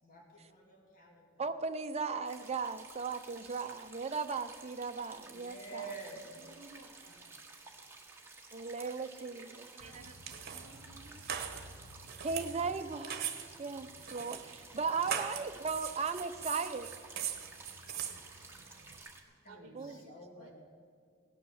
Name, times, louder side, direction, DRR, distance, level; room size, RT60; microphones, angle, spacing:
voice 1, 0.0-1.3 5.3-6.3 18.5-18.9 19.4-20.5, right 3 dB, 45° left, -2 dB, 2.5 m, -49 dB
voice 2, 1.4-5.9 8.5-10.1 12.2-16.9 19.7-20.1, right 4 dB, 30° right, 8 dB, 0.6 m, -37 dB
sound 1, 2.2-19.2, right 3 dB, 10° right, 1.5 m, -54 dB
voice 3, 6.0-7.4 9.3-10.2 10.5-11.2 16.3-16.4 18.1-18.2 19.5-20.5, right 2 dB, 70° right, 7 dB, 0.8 m, -57 dB
sound 2, 9.8-19.0, right 7 dB, 50° right, 1.2 m, -42 dB
17.5 x 9.9 x 7.2 m, 2.3 s
head